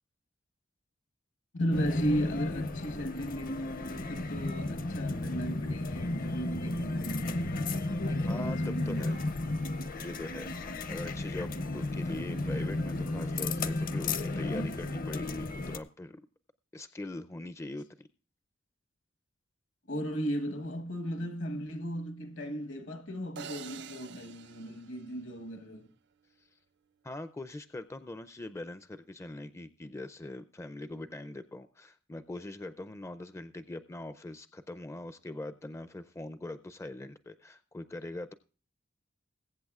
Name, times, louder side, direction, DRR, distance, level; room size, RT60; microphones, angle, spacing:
voice 1, 1.5-7.7 8.1-9.2 19.9-25.9, equal, 70° left, 1.3 m, -36 dB
sound 1, 1.7-15.8, left 2 dB, 45° left, 0.7 m, -33 dB
voice 2, 8.3-9.2 9.9-16.2 16.7-18.1 27.0-38.3, left 2 dB, 15° left, 0.4 m, -42 dB
sound 2, 23.4-25.7, right 7 dB, 60° right, 0.5 m, -47 dB
21.5 x 8.4 x 2.3 m
head